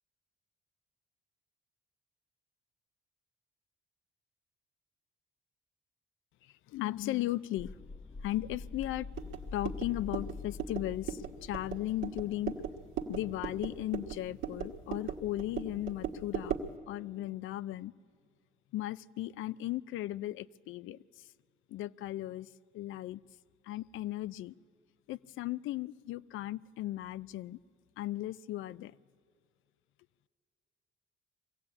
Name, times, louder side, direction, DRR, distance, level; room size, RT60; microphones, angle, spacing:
voice 1, 6.7-7.7 8.2-9.1 9.5-12.6 13.1-16.5 16.9-17.9 18.7-21.3 21.7-22.5 22.7-23.2 23.6-24.5 25.1-27.6 28.0-28.9, left 15 dB, 80° left, 19 dB, 0.5 m, -36 dB
sound 1, 7.6-12.4, left 4 dB, 10° left, 0.5 m, -45 dB
sound 2, 9.1-16.8, right 8 dB, 80° right, 1.5 m, -39 dB
22.0 x 15.5 x 8.8 m, 2.2 s
cardioid pair, 90°, 20 cm